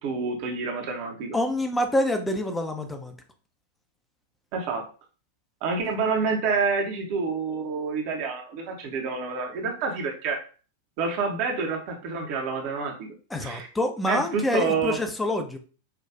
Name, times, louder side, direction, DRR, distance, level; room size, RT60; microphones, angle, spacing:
voice 1, 0.0-1.4 4.5-4.8 5.6-10.4 11.0-13.1 13.4-13.7 14.1-15.0, right 4 dB, 45° right, 2 dB, 0.8 m, -28 dB
voice 2, 1.3-3.2 13.3-15.6, left 1 dB, 10° left, 5 dB, 0.6 m, -26 dB
5.7 x 2.4 x 2.3 m, 0.38 s
figure-of-eight pair, 90°, 0 cm